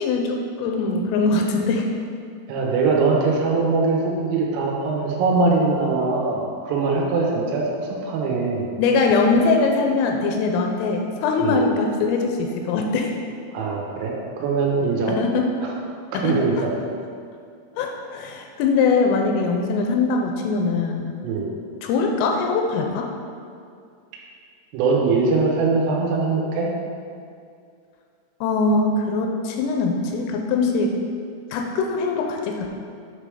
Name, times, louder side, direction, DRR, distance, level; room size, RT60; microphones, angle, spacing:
voice 1, 0.0-1.9 8.8-13.1 15.1-15.5 16.1-16.7 17.8-21.1 21.8-23.1 28.4-30.9 31.5-32.9, left 4 dB, 85° left, 2 dB, 3.1 m, -22 dB
voice 2, 2.5-8.7 11.4-11.6 13.5-15.2 15.6-15.7 16.1-16.7 21.2-21.5 24.7-26.7, right 4 dB, 90° right, -2 dB, 3.6 m, -22 dB
9.0 x 3.4 x 4.9 m, 2.3 s
omnidirectional pair, 5.9 m